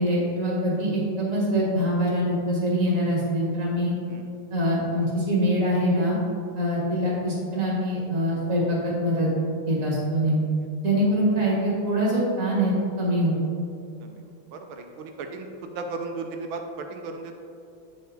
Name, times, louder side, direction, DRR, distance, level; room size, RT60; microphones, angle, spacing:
voice 1, 0.0-3.9 4.5-6.2 6.6-9.3 9.7-10.4 10.8-13.4, equal, 40° right, -5 dB, 2.2 m, -24 dB
voice 2, 6.7-7.1 11.1-11.2 14.0-14.3 14.5-17.4, right 3 dB, 80° right, 5 dB, 1.3 m, -36 dB
9.3 x 4.4 x 3.9 m, 2.5 s
omnidirectional pair, 2.3 m